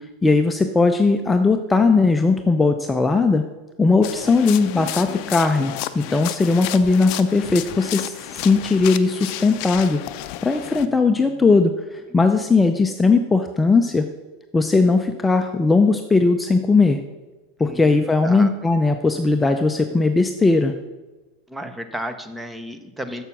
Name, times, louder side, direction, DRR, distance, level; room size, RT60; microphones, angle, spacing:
voice 1, 0.2-3.4 3.8-10.0 10.4-14.0 14.5-17.0 17.6-20.7, left 3 dB, 15° left, 6 dB, 0.6 m, -18 dB
sound 1, 4.0-10.9, left 14 dB, 60° left, 0.5 m, -32 dB
voice 2, 4.1-4.5 10.7-11.5 12.1-12.2 17.6-18.5 21.5-23.2, equal, 10° right, 9 dB, 0.9 m, -35 dB
7.1 x 6.6 x 5.9 m, 1.1 s
hypercardioid pair, 100°, 0 cm